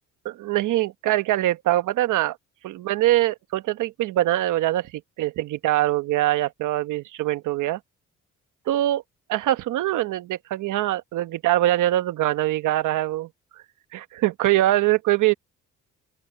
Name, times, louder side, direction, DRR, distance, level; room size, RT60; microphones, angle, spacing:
voice 1, 0.2-2.4 2.6-4.9 5.2-7.8 8.7-9.0 9.3-13.3 13.9-15.3, right 15 dB, 85° right, 1.1 m, -23 dB
open air
cardioid pair, 90°, 30 cm